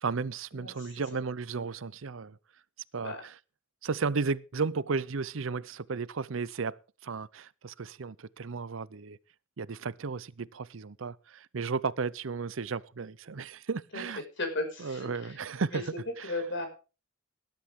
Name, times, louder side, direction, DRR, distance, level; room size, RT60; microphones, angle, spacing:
voice 1, 0.0-2.4 2.9-3.3 3.8-9.2 9.6-14.2 14.8-15.8 16.2-16.3, right 4 dB, 70° right, 0.6 m, -34 dB
voice 2, 0.6-1.2 3.0-3.2 13.9-14.0 14.4-15.4 15.7-15.8 16.2-16.7, left 2 dB, 65° left, 5.9 m, -35 dB
18.5 x 11.5 x 3.7 m
head